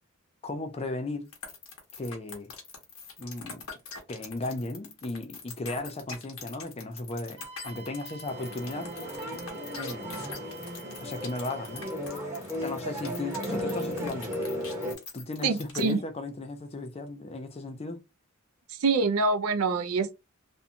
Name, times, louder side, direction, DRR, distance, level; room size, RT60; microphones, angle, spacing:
voice 1, 0.4-1.3 2.0-2.5 3.2-3.6 4.1-8.9 9.8-10.3 11.0-11.9 12.6-14.3 15.1-18.0, left 2 dB, 30° left, 0.4 m, -36 dB
sound 1, 1.3-16.0, left 5 dB, 65° left, 0.9 m, -43 dB
Wind instrument woodwind instrument, 7.4-12.0, right 4 dB, 55° right, 0.8 m, -48 dB
sound 2, 8.3-14.9, equal, 15° right, 0.8 m, -35 dB
voice 2, 15.4-16.0 18.8-20.2, right 4 dB, 85° right, 0.4 m, -25 dB
2.6 x 2.2 x 2.7 m
head